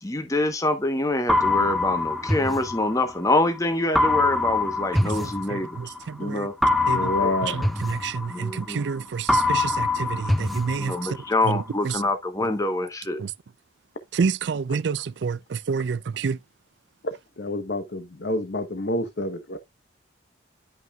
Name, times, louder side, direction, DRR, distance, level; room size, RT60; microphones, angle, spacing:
voice 1, 0.0-5.9 6.2-6.5 7.2-7.3 8.3-8.8 10.8-13.2, left 2 dB, 15° left, 1.0 m, -25 dB
sound 1, 1.3-3.4 3.9-6.0 6.6-8.9 9.3-11.4, left 2 dB, ahead, 0.5 m, -24 dB
voice 2, 5.2-6.5 6.9-7.1 7.4-10.9 11.8-11.9 13.2-13.3 14.1-16.4, right 5 dB, 65° right, 0.4 m, -28 dB
voice 3, 6.8-7.7 17.0-19.6, left 1 dB, 60° left, 0.9 m, -28 dB
10.5 x 5.5 x 2.3 m
head